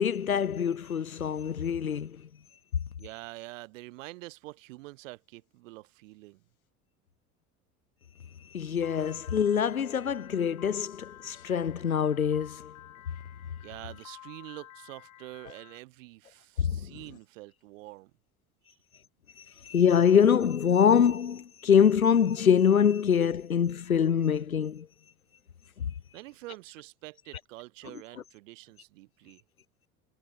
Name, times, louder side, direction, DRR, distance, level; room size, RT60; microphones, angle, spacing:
voice 1, 0.0-2.2 8.5-12.7 16.6-16.9 19.6-24.9 25.8-25.9, left 7 dB, 85° left, 1.1 m, -24 dB
voice 2, 3.0-6.4 13.6-18.1 26.1-29.4, right 20 dB, 65° right, 7.7 m, -46 dB
Piano, 8.8-15.8, left 14 dB, 45° left, 5.0 m, -52 dB
figure-of-eight pair, 70°, 41 cm